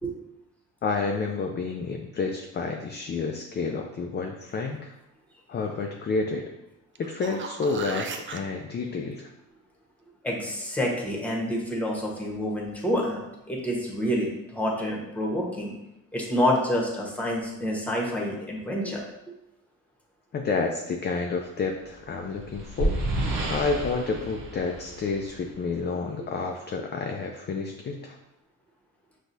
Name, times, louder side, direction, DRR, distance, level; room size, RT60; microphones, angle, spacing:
voice 1, 0.8-4.9 5.5-6.5 7.0-9.3 20.3-23.0 23.5-28.2, left 4 dB, 35° left, 2 dB, 0.4 m, -30 dB
sound 1, 7.0-8.4 13.2-13.3, right 5 dB, 35° right, 0.4 m, -36 dB
voice 2, 10.2-15.7 16.1-19.0, equal, 5° left, -2 dB, 1.1 m, -28 dB
sound 2, 22.0-25.6, right 1 dB, 80° right, 0.9 m, -30 dB
5.9 x 2.4 x 2.7 m, 0.91 s
cardioid pair, 80°, 32 cm